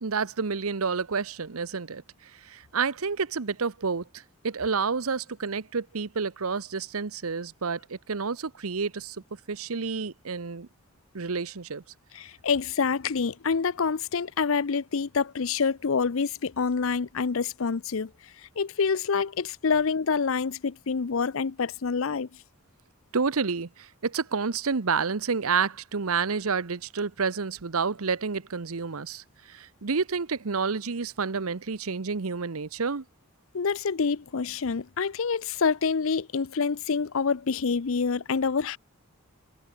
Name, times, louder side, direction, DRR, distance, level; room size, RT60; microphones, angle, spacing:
voice 1, 0.0-2.0 2.4-4.0 4.4-9.2 9.5-10.7 11.1-11.8 23.1-33.0, right 5 dB, 80° right, 0.9 m, -29 dB
voice 2, 12.1-18.1 18.6-22.3 33.5-38.8, left 5 dB, 65° left, 0.6 m, -27 dB
head